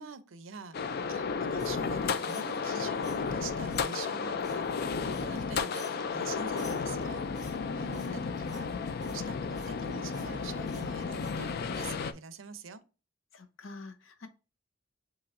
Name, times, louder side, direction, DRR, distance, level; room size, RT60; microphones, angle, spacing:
voice 1, 0.0-12.8, right 5 dB, 85° right, 0.6 m, -45 dB
sound 1, 0.7-12.1, left 5 dB, 50° left, 0.4 m, -33 dB
sound 2, 1.6-2.7 3.0-3.4 3.7-3.9 4.4-4.8 5.1-5.4 5.7-6.1 6.6-7.0 7.3-8.2 8.5-8.7 9.0-9.8 10.1-10.4 10.6-11.4 11.7-12.0, left 2 dB, 20° left, 1.8 m, -52 dB
voice 2, 7.7-8.3 13.3-14.3, left 2 dB, 80° left, 0.8 m, -45 dB
7.0 x 3.0 x 2.5 m
head